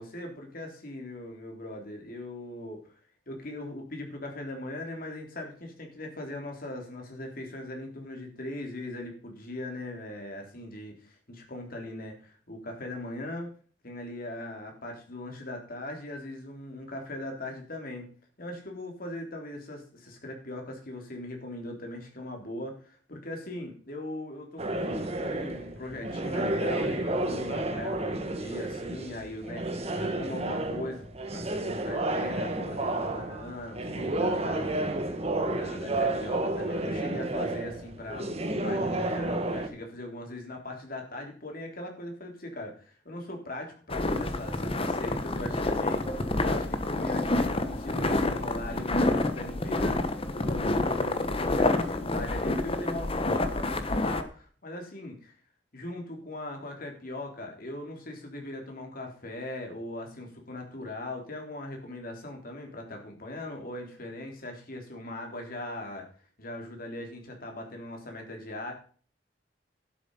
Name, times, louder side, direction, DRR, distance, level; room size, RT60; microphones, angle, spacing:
voice 1, 0.0-2.8 3.3-13.5 13.8-18.1 18.4-31.0 31.3-34.9 35.5-38.3 38.6-55.3 55.7-66.1 66.4-68.7, left 1 dB, 50° left, 2 dB, 3.6 m, -40 dB
sound 1, 24.6-39.7, right 2 dB, 35° right, 1.5 m, -31 dB
sound 2, 43.9-54.2, left 2 dB, 30° left, 1.1 m, -28 dB
12.0 x 7.3 x 5.5 m, 0.43 s
head